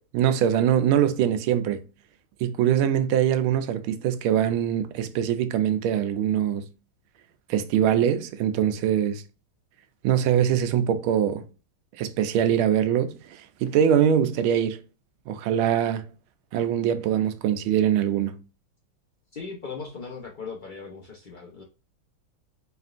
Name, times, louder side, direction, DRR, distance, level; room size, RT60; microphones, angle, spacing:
voice 1, 0.1-1.8 2.4-6.7 7.5-9.2 10.0-11.4 12.0-14.8 15.3-16.1 16.5-18.4, right 9 dB, 85° right, 1.4 m, -23 dB
voice 2, 19.3-21.6, left 5 dB, 75° left, 0.4 m, -38 dB
4.4 x 3.4 x 2.5 m
omnidirectional pair, 2.2 m